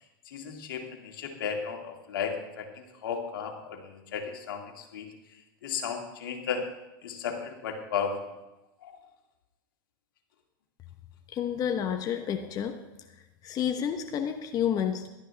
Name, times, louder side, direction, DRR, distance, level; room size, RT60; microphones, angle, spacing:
voice 1, 0.3-5.1 5.6-6.6 7.0-8.2 8.8-8.9, left 7 dB, 80° left, 3 dB, 2.3 m, -34 dB
voice 2, 11.3-12.8 13.4-15.1, left 8 dB, 35° left, 6 dB, 1.0 m, -30 dB
16.0 x 12.5 x 3.4 m, 1.0 s
hypercardioid pair, 115°, 11 cm